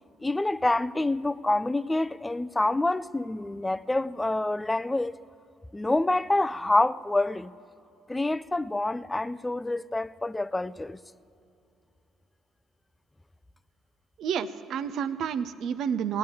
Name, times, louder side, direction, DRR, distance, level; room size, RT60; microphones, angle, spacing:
voice 1, 0.2-5.2 5.7-7.5 8.1-11.0, left 2 dB, 15° left, 0.5 m, -27 dB
voice 2, 14.2-16.2, right 7 dB, 65° right, 0.6 m, -30 dB
18.0 x 9.0 x 8.4 m
hypercardioid pair, 60°, 0 cm